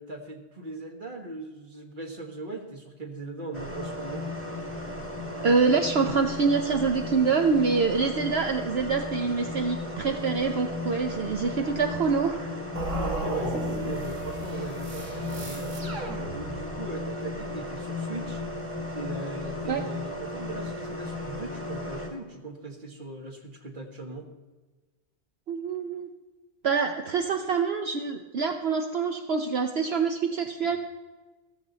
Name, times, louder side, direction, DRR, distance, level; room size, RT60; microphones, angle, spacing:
voice 1, 0.0-4.2 12.9-16.0 16.3-18.4 18.9-24.3 30.6-30.7, right 3 dB, 45° right, 3 dB, 1.6 m, -39 dB
sound 1, 3.5-22.1, left 2 dB, 10° right, 1.9 m, -35 dB
voice 2, 5.4-12.6 19.7-19.9 25.5-26.1 26.6-30.8, right 5 dB, 60° right, 5 dB, 1.0 m, -25 dB
sound 2, 12.8-16.9, right 2 dB, 90° right, 2.3 m, -35 dB
14.5 x 14.0 x 4.0 m, 1.2 s
omnidirectional pair, 1.2 m